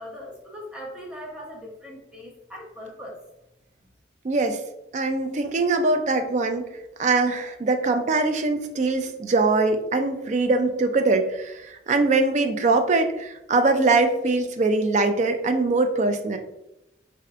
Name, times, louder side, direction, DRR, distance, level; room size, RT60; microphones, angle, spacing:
voice 1, 0.0-3.2, equal, 5° right, -3 dB, 0.7 m, -40 dB
voice 2, 4.2-4.6 4.9-6.7 7.0-16.4, right 3 dB, 40° right, 6 dB, 0.3 m, -22 dB
4.4 x 2.5 x 2.4 m, 0.89 s
head